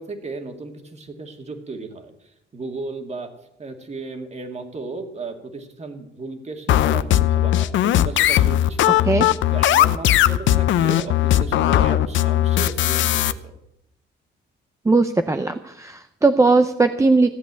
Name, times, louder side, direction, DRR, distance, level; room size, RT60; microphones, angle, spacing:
voice 1, 0.0-2.1 2.5-3.3 3.6-9.0 9.5-13.5, right 3 dB, 35° right, 6 dB, 2.2 m, -34 dB
sound 1, 6.7-13.3, left 13 dB, 80° left, 0.7 m, -18 dB
voice 2, 14.8-17.3, right 3 dB, 15° right, 8 dB, 0.6 m, -18 dB
15.0 x 8.1 x 8.2 m, 0.81 s
cardioid pair, 110°, 19 cm